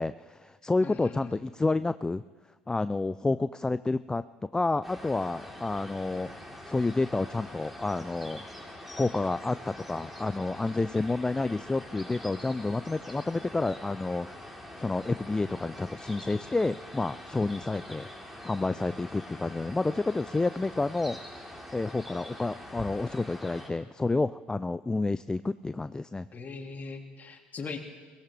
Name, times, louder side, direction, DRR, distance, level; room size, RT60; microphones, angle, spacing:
voice 1, 0.0-2.2 2.7-4.2 4.5-6.3 6.7-8.4 9.0-14.3 14.8-18.1 18.4-21.2 21.7-26.3, left 3 dB, 10° left, 14 dB, 0.4 m, -29 dB
voice 2, 0.8-1.4 26.3-27.9, left 4 dB, 30° left, 4 dB, 2.1 m, -40 dB
sound 1, 4.8-23.7, left 1 dB, 5° right, 3.7 m, -44 dB
22.5 x 17.5 x 3.4 m, 1.5 s
figure-of-eight pair, 65°, 5 cm